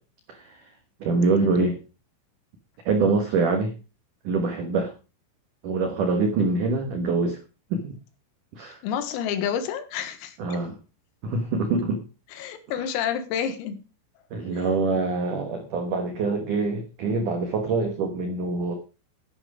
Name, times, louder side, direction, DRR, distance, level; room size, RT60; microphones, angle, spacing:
voice 1, 0.3-0.7 1.0-1.8 2.9-3.7 4.2-4.9 5.6-7.4 7.7-7.9 8.5-8.8 10.4-10.8 11.2-12.0 12.8-12.9 14.3-18.8, right 3 dB, 80° right, 6 dB, 1.8 m, -25 dB
voice 2, 8.8-10.4 12.3-13.8 14.5-14.6, left 8 dB, 85° left, 10 dB, 4.2 m, -29 dB
11.0 x 11.0 x 5.0 m, 0.32 s
omnidirectional pair, 6.0 m